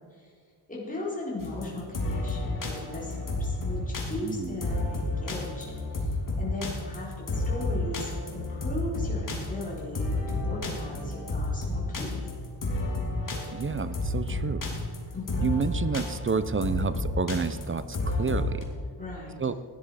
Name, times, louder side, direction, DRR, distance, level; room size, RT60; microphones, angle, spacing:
voice 1, 0.7-12.3 15.1-15.4 19.0-19.4, left 2 dB, 15° left, -5 dB, 4.2 m, -38 dB
sound 1, 1.4-18.6, left 2 dB, 45° left, 3.0 m, -31 dB
voice 2, 4.2-4.6 13.5-14.7 15.4-18.7 19.4-19.5, right 5 dB, 30° right, 13 dB, 0.5 m, -29 dB
16.0 x 10.5 x 4.9 m, 2.1 s
wide cardioid pair, 120°, 45 cm